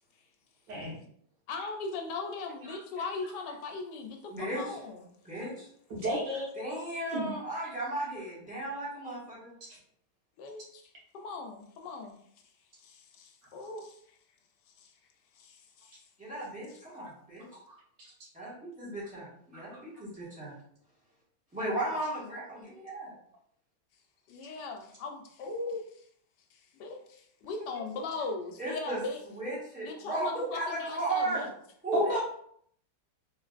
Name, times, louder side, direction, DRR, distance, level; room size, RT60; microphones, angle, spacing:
voice 1, 0.7-1.0 2.7-2.8 5.9-6.5 7.1-7.3 19.5-19.6 31.9-32.2, equal, 75° right, -5 dB, 2.0 m, -30 dB
voice 2, 1.5-5.1 10.4-10.8 11.1-12.1 12.8-14.0 14.8-14.9 15.4-16.0 16.3-16.5 24.3-25.8 26.5-29.2 29.8-31.5, left 3 dB, 75° left, 3 dB, 1.1 m, -39 dB
voice 3, 4.3-4.8 5.2-5.7 6.5-9.5 16.2-17.4 18.3-20.5 21.5-23.1 28.6-29.0 29.3-31.5 31.8-32.2, right 2 dB, 5° right, -8 dB, 1.2 m, -35 dB
3.5 x 3.1 x 2.4 m, 0.65 s
omnidirectional pair, 1.9 m